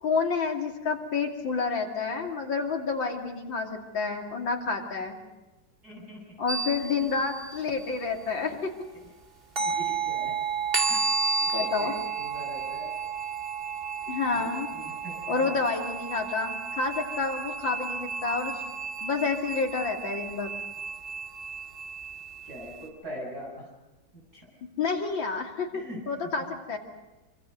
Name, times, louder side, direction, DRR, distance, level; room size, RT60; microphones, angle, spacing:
voice 1, 0.0-5.2 6.4-8.7 11.5-11.9 14.1-14.7 15.3-18.6 19.0-20.5 24.8-25.7 26.1-26.8, left 4 dB, 70° left, 2 dB, 3.5 m, -29 dB
voice 2, 5.8-6.4 6.8-6.9 9.6-10.3 10.9-11.0 11.4-13.0 14.3-15.6 22.5-23.7 24.1-24.5 25.7-26.0 26.4-26.5, equal, 50° right, 0 dB, 7.7 m, -42 dB
sound 1, 6.5-8.0 9.6-22.9, right 5 dB, 30° right, 2.5 m, -32 dB
26.0 x 25.5 x 6.6 m, 1.1 s
omnidirectional pair, 2.1 m